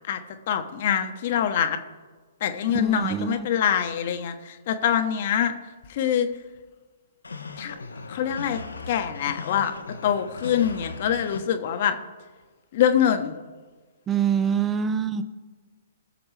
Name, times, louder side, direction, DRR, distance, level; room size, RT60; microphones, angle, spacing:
voice 1, 0.5-1.8 2.4-5.5 5.9-6.3 7.6-7.7 8.1-8.6 8.9-9.7 10.0-11.9 12.7-13.3, left 9 dB, 45° left, 8 dB, 1.0 m, -24 dB
voice 2, 2.7-3.5 14.1-15.2, right 7 dB, 20° right, 12 dB, 0.6 m, -25 dB
sound 1, 7.2-11.4, left 4 dB, 75° left, 0.9 m, -38 dB
20.0 x 7.1 x 3.3 m, 1.4 s
figure-of-eight pair, 120°, 0 cm